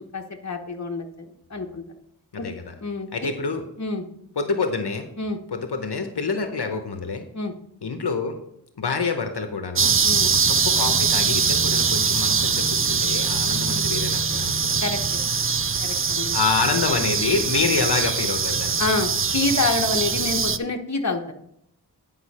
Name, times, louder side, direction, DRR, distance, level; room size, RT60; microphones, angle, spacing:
voice 1, 0.0-1.8 2.4-2.5 2.8-3.3 3.8-4.0 5.2-5.4 7.3-7.5 10.0-10.3 14.8-15.2 15.8-16.3 18.8-21.3, left 3 dB, 40° left, 3 dB, 1.1 m, -27 dB
voice 2, 2.3-2.7 3.1-3.6 4.4-5.1 5.5-7.2 7.8-8.4 8.8-10.0 10.5-14.9 16.3-18.8, left 4 dB, 75° left, 6 dB, 1.0 m, -27 dB
sound 1, 9.7-20.6, right 5 dB, 35° right, 0.4 m, -22 dB
9.9 x 5.5 x 4.2 m, 0.77 s
wide cardioid pair, 75°, 41 cm